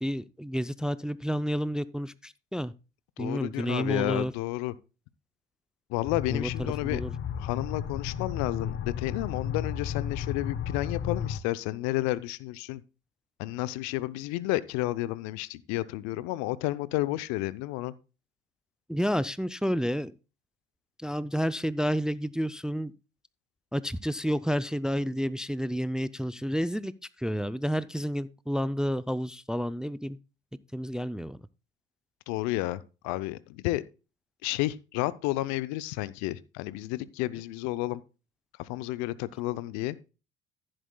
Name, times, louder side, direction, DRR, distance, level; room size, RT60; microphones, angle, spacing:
voice 1, 0.0-2.7 3.2-4.3 6.3-6.5 6.8-7.1 18.9-20.1 21.0-22.9 23.7-26.9 27.2-30.2 30.7-31.4, equal, ahead, 0.4 m, -30 dB
voice 2, 3.2-4.7 5.9-7.0 7.4-12.8 13.4-17.9 32.3-33.8 34.4-38.0 38.6-40.0, left 17 dB, 70° left, 0.6 m, -31 dB
sound 1, 6.0-11.4, left 8 dB, 45° left, 0.9 m, -33 dB
14.5 x 7.7 x 2.3 m
hypercardioid pair, 60°, 29 cm